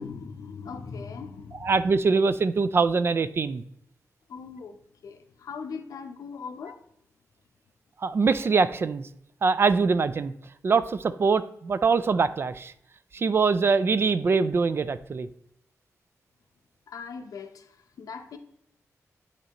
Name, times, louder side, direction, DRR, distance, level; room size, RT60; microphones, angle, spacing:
voice 1, 0.0-1.7 4.3-6.8 16.9-18.4, left 5 dB, 80° left, 0.6 m, -40 dB
voice 2, 1.6-3.6 8.0-9.1 9.4-10.3 10.6-12.7 13.1-15.3, right 4 dB, 45° right, 0.3 m, -23 dB
9.4 x 4.4 x 2.9 m
wide cardioid pair, 130°, 6 cm